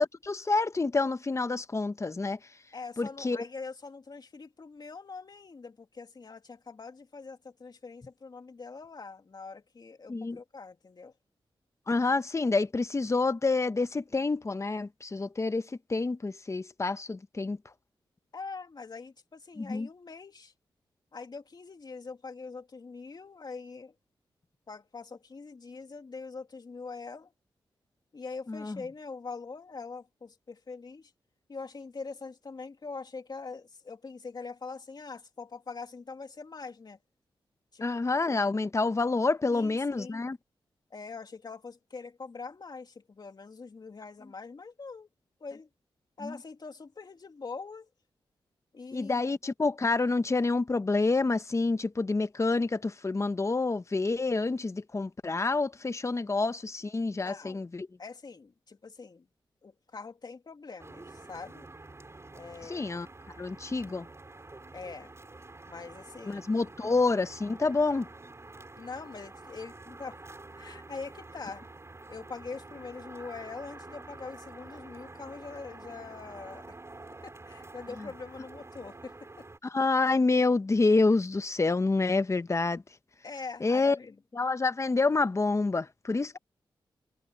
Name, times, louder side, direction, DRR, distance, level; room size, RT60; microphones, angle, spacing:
voice 1, 0.0-2.4 3.0-3.4 10.1-10.4 11.9-15.6 15.9-17.6 19.6-19.9 28.5-28.8 37.8-40.4 46.2-46.3 48.9-57.9 62.7-63.1 63.4-64.1 66.3-68.1 79.6-82.8 83.6-84.0 84.3-86.4, left 3 dB, 35° left, 1.0 m, -28 dB
voice 2, 2.7-11.1 18.3-20.5 21.1-23.9 24.7-27.3 28.1-31.1 31.5-37.0 37.7-38.2 39.5-40.2 40.9-45.1 45.4-45.7 46.2-47.9 48.7-49.3 56.9-57.6 58.0-59.3 59.6-61.7 62.3-62.9 64.7-65.1 65.7-66.9 68.8-70.2 70.6-71.6 72.1-76.8 77.2-79.1 83.2-84.2, left 4 dB, 50° left, 2.8 m, -43 dB
sound 1, 60.8-79.6, right 2 dB, 30° right, 6.5 m, -48 dB
cardioid pair, 70°, 9 cm